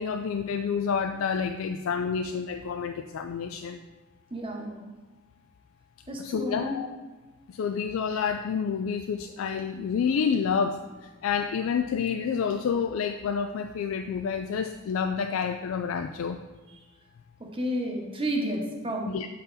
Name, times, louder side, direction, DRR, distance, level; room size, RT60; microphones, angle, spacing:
voice 1, 0.0-3.8 6.2-6.9 7.5-16.4 19.1-19.3, left 6 dB, 80° left, 6 dB, 0.3 m, -29 dB
voice 2, 4.3-4.9 6.1-6.7 17.5-19.1, equal, 25° right, 0 dB, 1.0 m, -31 dB
7.9 x 3.9 x 4.0 m, 1.2 s
head